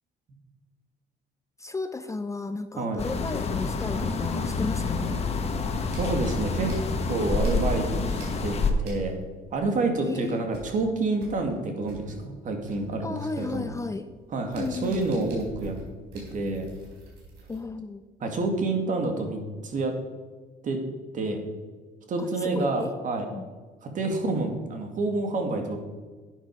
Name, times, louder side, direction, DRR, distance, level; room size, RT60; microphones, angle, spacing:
voice 1, 1.6-5.1 10.0-10.4 13.0-14.1 14.6-15.0 17.5-18.0 22.2-22.9 23.3-23.5, left 3 dB, 20° left, 9 dB, 0.6 m, -34 dB
sound 1, 3.0-8.7, left 3 dB, 40° left, 1.4 m, -28 dB
sound 2, 5.8-7.9 8.1-9.4 9.7-9.8 10.1-17.6, right 2 dB, 90° right, 4.1 m, -46 dB
voice 2, 5.9-6.7 7.1-9.1 9.5-13.7 14.3-15.8 16.3-16.7 18.2-19.9 20.6-20.8 21.1-21.4 22.1-23.3 23.8-25.8, right 3 dB, 50° right, 3 dB, 2.3 m, -28 dB
11.5 x 8.9 x 4.8 m, 1.4 s
cardioid pair, 110°, 17 cm